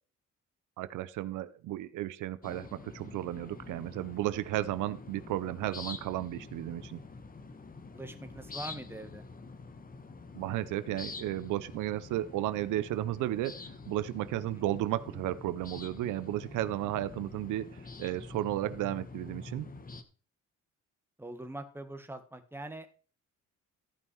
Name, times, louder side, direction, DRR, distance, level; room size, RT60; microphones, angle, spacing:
voice 1, 0.8-7.0 10.3-13.6 13.9-19.7, right 14 dB, 85° right, 15 dB, 0.7 m, -34 dB
sound 1, 2.4-20.0, left 3 dB, 30° left, 1.3 m, -46 dB
voice 2, 7.9-9.2 14.5-14.7 21.2-22.9, right 1 dB, 10° right, 7 dB, 1.7 m, -43 dB
14.5 x 5.5 x 4.7 m, 0.39 s
cardioid pair, 90°, 30 cm